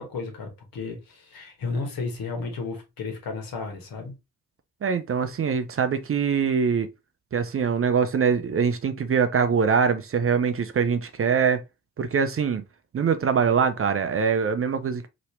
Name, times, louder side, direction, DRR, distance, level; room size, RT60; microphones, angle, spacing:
voice 1, 0.0-4.1, left 4 dB, 65° left, 1.4 m, -33 dB
voice 2, 4.8-6.9 7.3-11.6 12.0-12.6 12.9-15.1, right 6 dB, 35° right, 0.6 m, -23 dB
3.0 x 2.8 x 3.2 m
hypercardioid pair, 45°, 38 cm